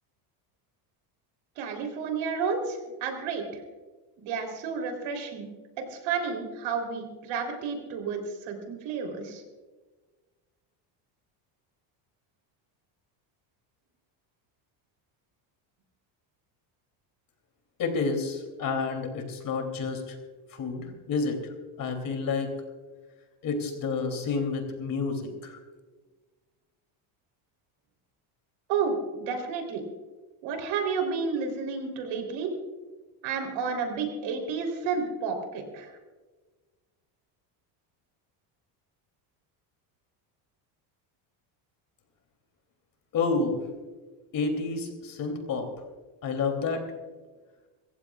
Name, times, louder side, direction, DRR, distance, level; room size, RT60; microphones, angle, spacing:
voice 1, 1.6-3.6 4.2-5.5 5.8-9.4 28.7-29.8 30.4-32.5 33.2-35.9, right 5 dB, 65° right, 4 dB, 3.7 m, -31 dB
voice 2, 17.8-20.2 20.5-21.5 21.8-22.5 23.4-25.6 43.1-43.6 44.3-45.7 46.2-46.8, left 4 dB, 40° left, 5 dB, 3.1 m, -29 dB
26.0 x 15.5 x 2.4 m, 1.3 s
cardioid pair, 145°, 50 cm